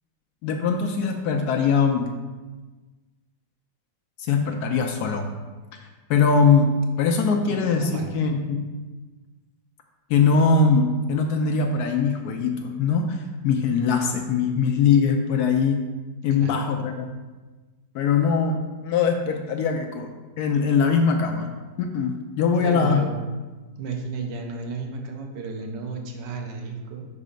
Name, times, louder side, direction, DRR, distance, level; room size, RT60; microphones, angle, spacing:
voice 1, 0.4-2.1 4.3-5.3 5.7-5.8 6.1-8.7 10.1-15.8 16.2-17.1 17.9-18.6 18.8-20.1 20.4-21.5 21.8-23.0, left 5 dB, 70° left, 4 dB, 1.0 m, -21 dB
voice 2, 7.5-8.1 16.3-16.6 22.6-23.2 23.8-27.1, right 3 dB, 80° right, 2 dB, 1.5 m, -33 dB
5.5 x 4.1 x 5.1 m, 1.3 s
omnidirectional pair, 1.9 m